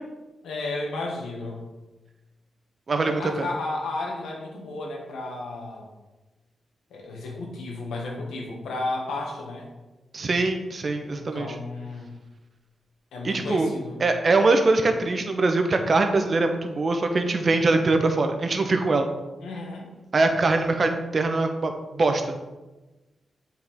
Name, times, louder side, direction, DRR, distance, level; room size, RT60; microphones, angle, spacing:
voice 1, 0.4-1.6 3.0-5.9 6.9-9.7 11.1-12.2 13.1-14.0 19.4-19.9, left 2 dB, 85° left, 0 dB, 1.3 m, -33 dB
voice 2, 2.9-3.5 10.1-11.6 13.2-13.7 14.0-19.1 20.1-22.3, right 3 dB, 50° right, 6 dB, 0.9 m, -23 dB
7.6 x 4.5 x 3.5 m, 1.1 s
supercardioid pair, 50°, 0 cm